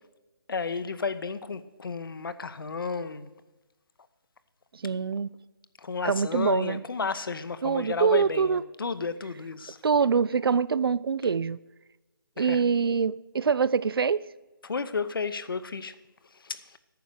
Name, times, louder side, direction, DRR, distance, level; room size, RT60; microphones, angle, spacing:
voice 1, 0.5-3.3 5.8-9.8 12.4-12.6 14.6-15.9 16.4-16.8, left 4 dB, 70° left, 0.8 m, -32 dB
voice 2, 4.7-5.3 6.0-6.8 7.6-8.6 9.8-11.6 12.4-14.3, right 6 dB, 80° right, 0.4 m, -24 dB
9.3 x 6.2 x 6.9 m
hypercardioid pair, 165°, 12 cm